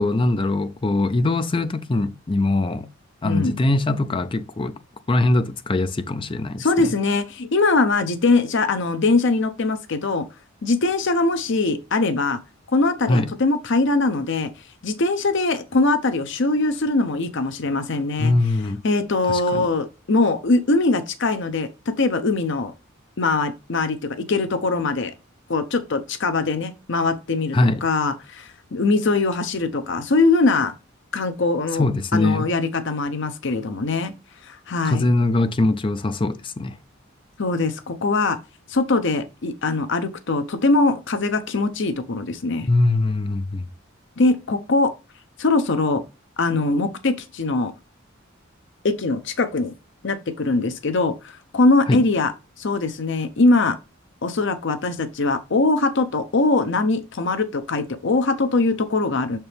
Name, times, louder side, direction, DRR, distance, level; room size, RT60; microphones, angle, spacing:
voice 1, 0.0-2.9 3.2-4.8 5.1-6.9 13.1-13.3 18.2-18.8 19.3-19.7 27.5-27.8 31.8-32.4 34.8-36.8 42.7-43.7 51.9-52.0, left 2 dB, 25° left, 0.5 m, -22 dB
voice 2, 3.2-3.6 6.6-10.3 10.6-12.4 12.7-14.5 14.8-18.3 18.8-21.7 22.0-22.7 23.2-25.1 25.5-27.6 27.8-30.7 31.1-31.9 32.1-34.1 34.5-35.0 37.4-38.4 38.7-42.7 44.2-44.9 45.4-46.0 46.4-47.7 48.8-49.7 50.0-52.3 52.6-53.8 54.2-59.4, left 3 dB, 60° left, 0.7 m, -22 dB
6.6 x 4.4 x 3.4 m
head